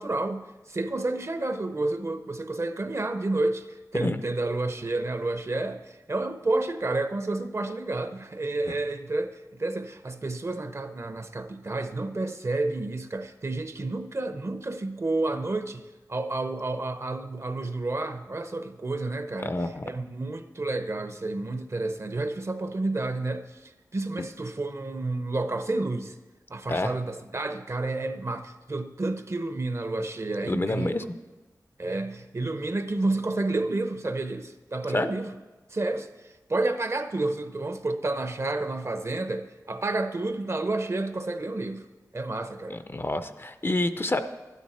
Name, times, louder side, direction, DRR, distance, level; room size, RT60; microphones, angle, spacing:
voice 1, 0.0-15.8 16.1-19.6 19.8-26.2 26.5-31.0 31.8-35.3 35.7-41.9 42.1-42.8, right 2 dB, 45° right, 9 dB, 0.7 m, -30 dB
voice 2, 19.4-19.9 26.7-26.9 30.5-31.0 34.9-35.1 42.7-44.2, left 2 dB, 35° left, 10 dB, 0.5 m, -28 dB
11.5 x 9.3 x 4.2 m, 1.2 s
wide cardioid pair, 70°, 7 cm